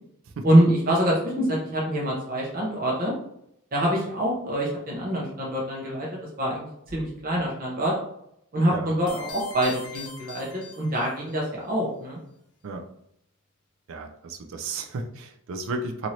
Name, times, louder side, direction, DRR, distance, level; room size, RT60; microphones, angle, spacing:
voice 1, 0.4-3.1 3.7-6.1 6.4-8.0 8.5-12.2, right 1 dB, 40° right, -3 dB, 0.7 m, -25 dB
comet high C, 9.1-11.4, left 4 dB, 80° left, 0.7 m, -42 dB
voice 2, 13.9-16.1, right 3 dB, 60° right, 5 dB, 0.4 m, -33 dB
2.8 x 2.6 x 3.0 m, 0.75 s
head